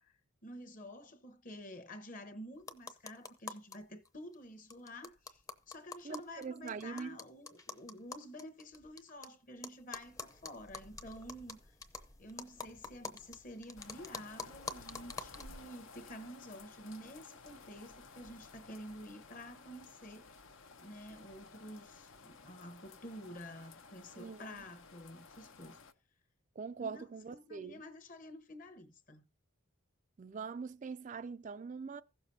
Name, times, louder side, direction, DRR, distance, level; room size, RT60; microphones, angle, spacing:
voice 1, 0.0-5.4 5.7-11.7 12.2-20.4 20.8-25.8 26.8-29.2, equal, 40° left, 1.1 m, -50 dB
sound 1, 2.6-3.8 4.0-4.1 4.3-4.4 4.7-9.3 9.6-15.6, left 4 dB, 15° left, 0.7 m, -47 dB
voice 2, 6.0-7.2 24.2-24.6 26.6-27.7 30.2-32.0, right 5 dB, 35° right, 0.3 m, -43 dB
sound 2, 13.8-25.9, left 4 dB, 65° left, 0.8 m, -56 dB
16.0 x 6.8 x 2.8 m
head